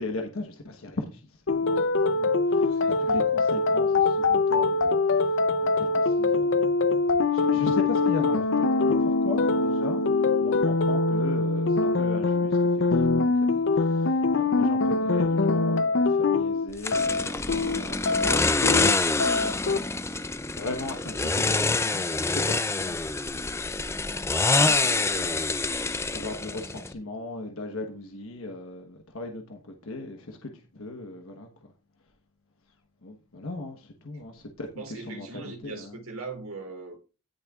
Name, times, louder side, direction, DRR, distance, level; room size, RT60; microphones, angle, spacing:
voice 1, 0.0-6.7 7.3-10.0 10.4-23.0 23.3-23.6 24.6-25.9 26.1-31.7 33.0-34.7 35.1-35.9, left 2 dB, 75° left, 1.2 m, -38 dB
sound 1, 1.5-19.8, left 3 dB, 60° left, 0.6 m, -23 dB
voice 2, 2.7-3.2 34.8-37.0, right 3 dB, 80° right, 2.5 m, -40 dB
sound 2, 16.8-26.9, left 3 dB, 10° left, 0.4 m, -26 dB
17.5 x 6.5 x 2.4 m
head